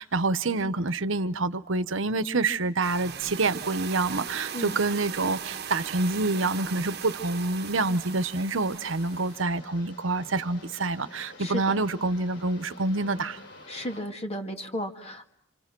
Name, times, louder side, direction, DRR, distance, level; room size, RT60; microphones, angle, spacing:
voice 1, 0.0-13.4, right 3 dB, 75° right, 1.0 m, -27 dB
sound 1, 2.8-9.4, right 7 dB, 50° right, 1.2 m, -38 dB
sound 2, 5.9-14.0, left 2 dB, 60° left, 7.0 m, -50 dB
voice 2, 11.4-11.8 13.7-15.3, equal, 30° left, 2.2 m, -34 dB
28.0 x 27.0 x 6.1 m
head